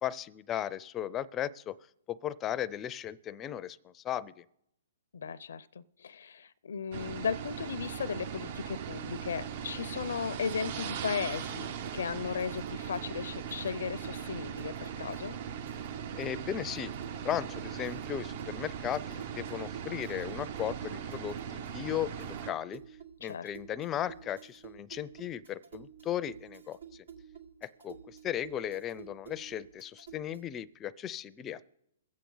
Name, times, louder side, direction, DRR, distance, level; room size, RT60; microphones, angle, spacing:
voice 1, 0.0-1.8 2.1-4.4 16.1-22.8 23.2-26.8 27.6-31.7, left 10 dB, 20° left, 0.5 m, -36 dB
voice 2, 5.1-11.7 11.9-15.4 23.2-23.5, left 6 dB, 75° left, 0.5 m, -36 dB
sound 1, 6.9-22.5, right 8 dB, 50° right, 0.7 m, -39 dB
sound 2, 11.0-30.6, right 8 dB, 80° right, 1.6 m, -51 dB
22.5 x 8.3 x 3.9 m
hypercardioid pair, 140°, 0 cm